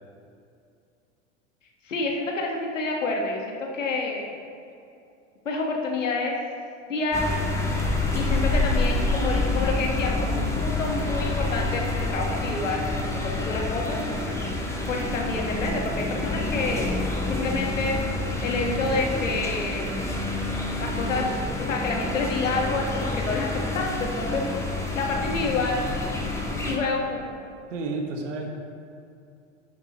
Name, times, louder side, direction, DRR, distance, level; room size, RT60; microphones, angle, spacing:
voice 1, 1.8-4.3 5.4-6.4 6.9-7.4 8.1-11.8 12.1-14.3 14.9-17.0 17.3-18.0 18.4-19.9 20.8-21.3 21.7-23.5 23.7-24.4 24.9-25.9 26.6-27.3, left 3 dB, 85° left, 0 dB, 1.5 m, -28 dB
sound 1, 7.1-26.8, left 2 dB, 10° left, 1.5 m, -28 dB
voice 2, 27.7-28.5, right 3 dB, 75° right, 2 dB, 1.6 m, -31 dB
10.5 x 9.1 x 3.0 m, 2.5 s
hypercardioid pair, 85°, 37 cm